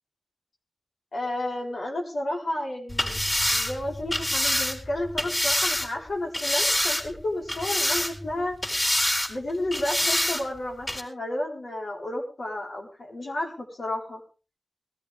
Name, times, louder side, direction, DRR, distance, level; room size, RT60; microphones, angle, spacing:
voice 1, 1.1-3.2 3.5-8.5 9.3-14.2, left 1 dB, 85° left, -1 dB, 4.4 m, -31 dB
sound 1, 2.9-5.9 6.3-7.2 7.5-8.3 8.6-9.3 9.7-10.4 10.9-11.0, left 1 dB, 30° left, 4.4 m, -26 dB
20.0 x 13.5 x 3.6 m, 0.35 s
cardioid pair, 50°, 0 cm